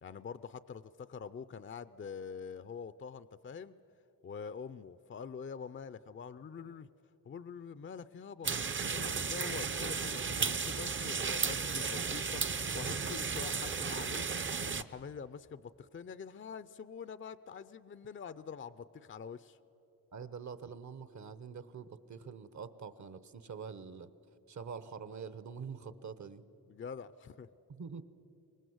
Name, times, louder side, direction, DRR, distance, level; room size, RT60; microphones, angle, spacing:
voice 1, 0.0-3.8 4.2-6.9 7.2-8.5 8.9-19.6 26.7-27.5, left 6 dB, 35° left, 15 dB, 0.5 m, -45 dB
sound 1, 8.4-14.8, right 5 dB, 35° right, 0.6 m, -34 dB
voice 2, 20.1-24.1 24.5-26.4 27.7-28.0, right 6 dB, 55° right, 14 dB, 1.0 m, -45 dB
24.0 x 20.0 x 8.0 m, 3.0 s
cardioid pair, 85°, 35 cm